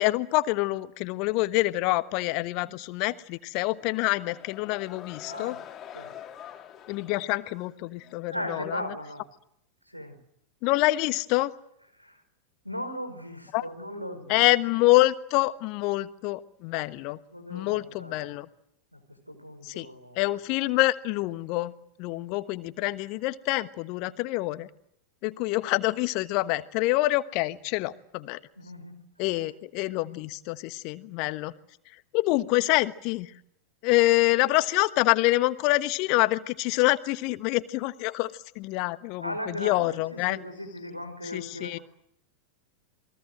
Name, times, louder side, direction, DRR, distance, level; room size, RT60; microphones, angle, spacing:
voice 1, 0.0-5.5 6.9-8.8 10.6-11.5 13.5-13.6 14.3-17.2 17.5-18.5 19.6-19.9 20.2-21.7 22.0-24.7 25.2-28.4 29.2-31.5 32.1-33.3 33.8-40.4 41.3-41.8, left 19 dB, 45° left, 13 dB, 1.2 m, -26 dB
sound 1, 3.7-8.2, left 10 dB, 25° left, 2.9 m, -45 dB
voice 2, 5.3-5.6 5.9-6.1 8.3-9.3 9.9-10.2 12.0-12.2 12.6-14.4 17.3-18.4 18.9-19.0 19.3-20.2 28.6-29.0 39.2-41.8, equal, 90° right, 8 dB, 5.0 m, -38 dB
28.5 x 21.5 x 7.8 m, 0.76 s
figure-of-eight pair, 90°, 0 cm